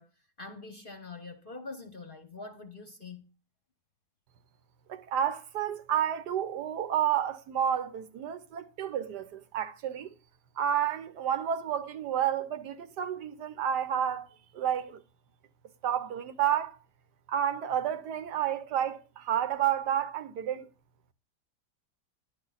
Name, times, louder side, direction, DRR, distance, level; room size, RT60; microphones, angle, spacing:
voice 1, 0.0-3.3, left 3 dB, 40° left, 0.9 m, -44 dB
voice 2, 4.9-10.1 10.6-15.0 15.8-16.8 17.3-20.7, right 9 dB, 80° right, 1.5 m, -30 dB
11.0 x 11.0 x 4.0 m
omnidirectional pair, 1.8 m